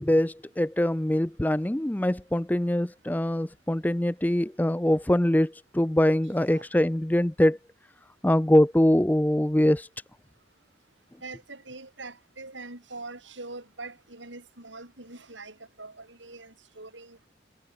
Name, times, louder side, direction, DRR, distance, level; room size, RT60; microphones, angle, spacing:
voice 1, 0.0-7.6 8.2-9.9, left 1 dB, 10° left, 0.5 m, -23 dB
voice 2, 11.2-17.3, right 3 dB, 90° right, 6.4 m, -43 dB
head